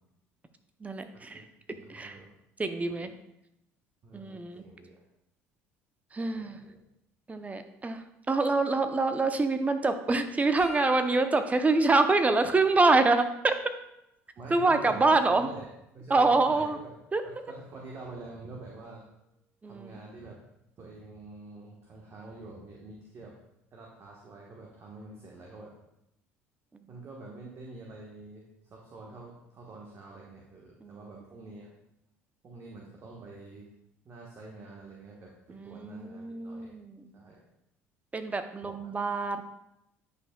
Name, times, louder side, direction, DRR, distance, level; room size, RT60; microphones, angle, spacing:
voice 1, 0.8-1.4 1.9-2.2 2.6-3.1 4.1-4.6 6.1-6.6 7.3-13.5 14.5-15.5 16.1-16.8 17.1-17.2 19.6-19.9 30.8-31.0 35.5-37.1 38.1-39.4, right 3 dB, 20° right, 9 dB, 0.7 m, -26 dB
voice 2, 1.3-2.3 2.9-3.1 4.0-5.0 6.3-6.8 14.4-15.7 15.9-16.9 17.2-19.0 19.6-20.4 20.8-23.3 23.7-25.7 26.9-31.7 32.4-33.7 34.0-36.7 37.1-37.5 38.6-38.8, right 2 dB, 40° right, -2 dB, 1.2 m, -46 dB
sound 1, 10.6-14.3 14.9-16.8 19.7-19.9 21.1-21.3 22.6-22.7, equal, 90° right, 1.7 m, -51 dB
9.6 x 5.5 x 2.3 m, 0.82 s
hypercardioid pair, 60°, 7 cm